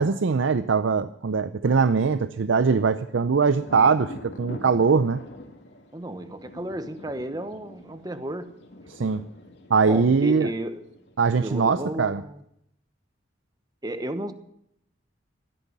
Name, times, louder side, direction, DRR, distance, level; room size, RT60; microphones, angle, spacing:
voice 1, 0.0-5.2 8.9-9.2 9.7-10.5 11.2-12.2, right 5 dB, 80° right, 0.5 m, -22 dB
Thunder, 2.1-11.5, equal, 65° left, 2.6 m, -45 dB
voice 2, 5.9-8.6 9.8-10.8 11.4-12.4 13.8-14.3, right 1 dB, 20° right, 1.0 m, -33 dB
16.5 x 12.0 x 6.0 m
head